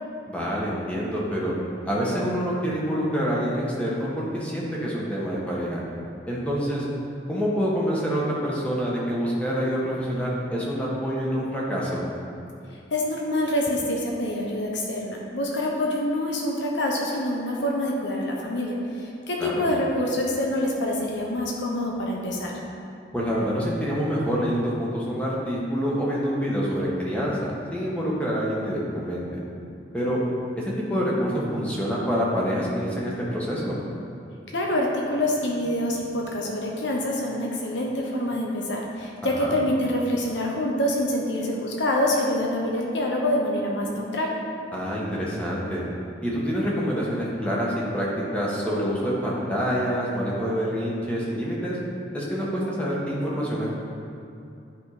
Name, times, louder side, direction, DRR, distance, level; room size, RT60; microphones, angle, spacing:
voice 1, 0.3-1.5 1.8-5.8 6.3-6.8 7.3-12.0 19.4-19.5 23.1-29.2 29.9-30.2 30.6-33.7 39.2-39.6 44.7-45.8 46.2-48.1 48.3-51.8 52.1-53.7, equal, 5° left, -6 dB, 1.5 m, -26 dB
voice 2, 12.9-22.5 34.5-44.3, left 1 dB, 75° left, -2 dB, 1.1 m, -26 dB
10.5 x 5.5 x 5.0 m, 2.6 s
head